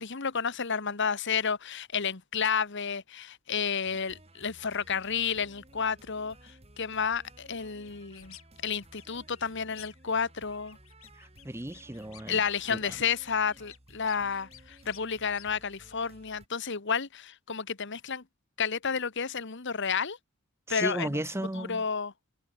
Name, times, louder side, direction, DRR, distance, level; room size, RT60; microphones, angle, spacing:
voice 1, 0.0-6.3 6.8-8.3 8.6-10.8 12.3-18.2 18.6-20.2 20.7-21.1 21.5-22.1, left 6 dB, 60° left, 1.4 m, -31 dB
sound 1, 3.8-16.5, right 1 dB, 30° right, 7.3 m, -56 dB
sound 2, 7.9-8.5 8.7-10.2 10.5-12.4 12.7-15.5, left 13 dB, 80° left, 7.7 m, -54 dB
voice 2, 11.1-12.4 12.7-13.0 20.7-21.8, right 1 dB, 10° right, 0.9 m, -35 dB
open air
head